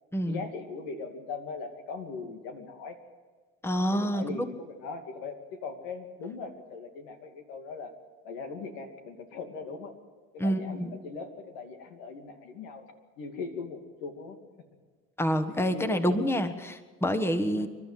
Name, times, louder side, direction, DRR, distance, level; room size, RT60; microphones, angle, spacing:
voice 1, 0.3-3.0 3.9-7.9 8.2-9.9 10.3-12.9 13.2-14.4 15.3-16.2 16.6-16.7 17.5-17.7, left 4 dB, 85° left, 5 dB, 2.7 m, -40 dB
voice 2, 3.6-4.5 10.4-10.9 15.2-17.7, equal, 10° left, 7 dB, 1.4 m, -27 dB
28.5 x 12.0 x 7.6 m, 1.5 s
supercardioid pair, 95°, 29 cm